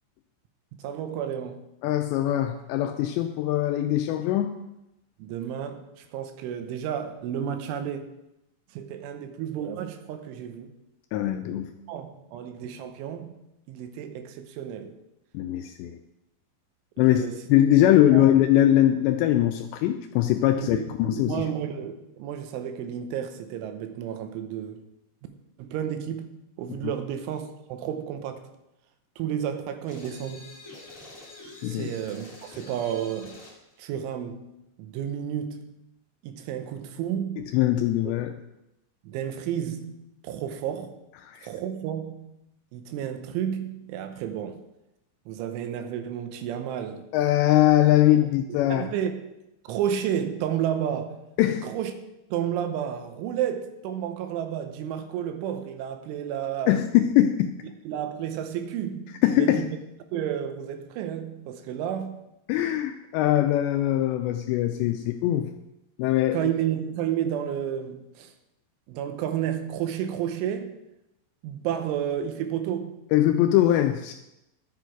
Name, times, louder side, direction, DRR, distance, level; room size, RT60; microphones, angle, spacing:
voice 1, 0.8-1.7 5.2-8.1 8.7-10.7 11.9-13.3 13.7-15.0 17.0-17.4 18.1-18.3 20.5-24.8 25.6-28.5 29.2-30.5 31.7-33.4 33.8-34.5 34.8-35.8 36.2-37.5 38.0-38.1 39.0-40.9 41.4-42.3 42.7-44.6 45.3-47.1 48.5-49.1 49.6-51.3 51.6-51.9 52.3-56.8 57.9-59.8 60.1-62.2 66.3-68.3 68.9-70.8 71.4-73.0, right 9 dB, 85° right, 8 dB, 3.3 m, -31 dB
voice 2, 1.8-4.5 11.1-11.7 15.3-16.0 17.0-17.2 17.5-21.4 26.8-26.9 31.6-31.9 37.5-38.3 41.2-41.5 47.1-48.9 51.4-51.7 56.7-57.6 59.2-59.6 62.5-65.5 66.0-66.4 73.1-74.1, left 13 dB, 85° left, 6 dB, 2.5 m, -22 dB
sound 1, 29.9-33.6, left 2 dB, 35° left, 1.2 m, -46 dB
11.5 x 8.1 x 4.6 m, 0.90 s
omnidirectional pair, 5.5 m